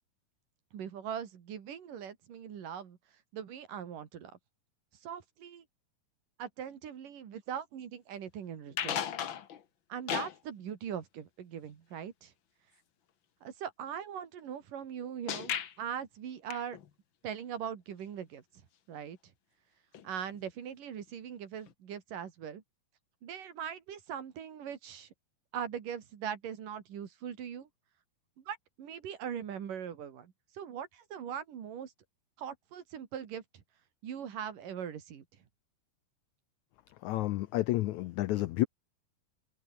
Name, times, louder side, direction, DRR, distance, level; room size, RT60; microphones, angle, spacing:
voice 1, 0.7-3.0 3.3-4.3 5.0-5.6 6.4-9.0 9.9-12.3 13.4-16.8 17.2-18.4 18.9-19.2 20.0-22.6 23.2-25.1 25.5-27.7 28.4-31.9 32.4-33.4 34.0-35.3, right 8 dB, 65° right, 3.9 m, -41 dB
sound 1, 8.7-9.6 10.1-10.4 15.3-15.8 16.5-16.9 19.9-20.1 20.3-20.5 21.7-21.8, left 9 dB, 65° left, 1.2 m, -35 dB
voice 2, 37.0-38.7, left 17 dB, 85° left, 1.6 m, -30 dB
omnidirectional pair, 4.1 m